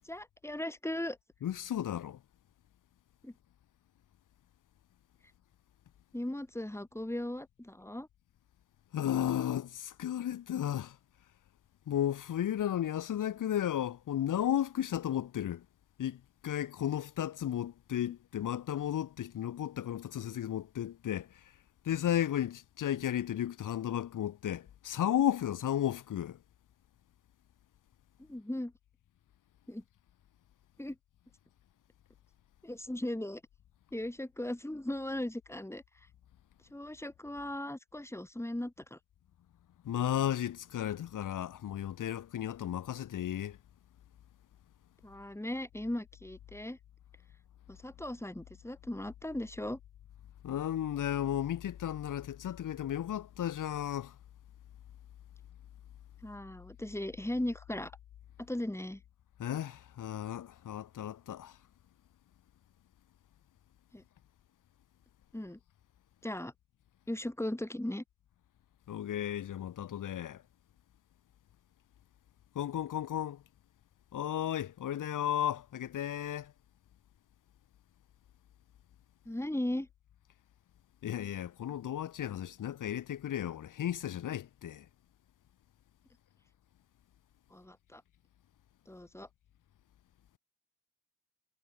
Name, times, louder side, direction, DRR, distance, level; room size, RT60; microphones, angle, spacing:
voice 1, 0.0-1.2 3.2-3.3 6.1-8.1 28.2-28.7 29.7-29.8 30.8-31.0 32.6-33.4 33.9-35.8 36.7-39.0 45.0-46.8 47.7-49.8 56.2-57.9 58.4-59.0 63.9-64.0 65.3-65.6 66.2-66.5 67.1-68.0 79.3-79.9 87.5-88.0 88.9-89.3, left 1 dB, 10° left, 6.0 m, -38 dB
voice 2, 1.4-2.2 8.9-11.0 11.9-15.7 16.0-21.5 21.8-26.4 39.8-43.6 50.4-54.2 59.4-61.6 68.9-70.4 72.5-73.4 74.1-76.5 81.0-84.9, left 11 dB, 65° left, 4.2 m, -34 dB
hypercardioid pair, 50°, 34 cm